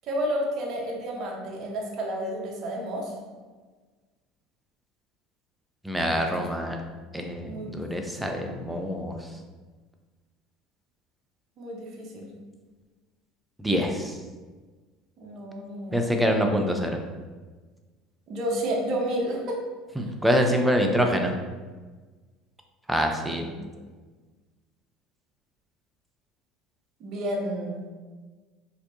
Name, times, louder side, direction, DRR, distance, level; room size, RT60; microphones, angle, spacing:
voice 1, 0.1-3.1 6.1-6.3 7.4-8.6 11.6-12.3 15.2-16.2 18.3-19.6 20.0-20.1 23.4-23.7 27.0-27.8, equal, 50° right, -1 dB, 0.8 m, -31 dB
voice 2, 5.8-6.8 7.1-9.2 13.6-14.2 15.9-17.0 20.0-21.3 22.9-23.4, equal, 5° right, 3 dB, 0.5 m, -25 dB
4.2 x 2.8 x 2.6 m, 1.4 s
supercardioid pair, 100°, 0 cm